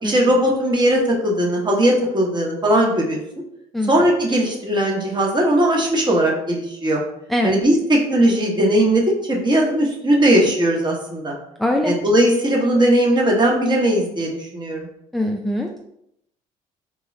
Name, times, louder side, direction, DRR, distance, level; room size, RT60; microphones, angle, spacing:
voice 1, 0.0-3.2 3.9-7.0 7.4-11.4 11.8-14.9, right 1 dB, 30° right, -1 dB, 1.1 m, -18 dB
voice 2, 3.7-4.1 7.3-7.6 11.6-11.9 15.1-15.8, left 1 dB, ahead, 1 dB, 0.3 m, -22 dB
3.7 x 2.2 x 3.2 m, 0.77 s
supercardioid pair, 70°, 16 cm